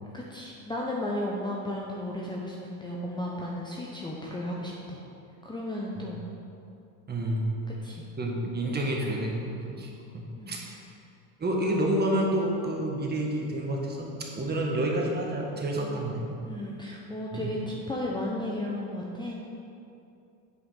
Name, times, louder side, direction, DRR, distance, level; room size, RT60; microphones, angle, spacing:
voice 1, 0.1-5.0 5.4-6.2 7.8-8.0 10.4-10.6 15.8-16.0 16.4-19.4, left 1 dB, 10° left, -3 dB, 0.9 m, -34 dB
voice 2, 7.1-7.6 8.2-10.6 11.4-16.2 17.3-17.5, right 1 dB, 25° right, -1 dB, 1.6 m, -29 dB
8.2 x 5.6 x 5.6 m, 2.6 s
supercardioid pair, 110°, 41 cm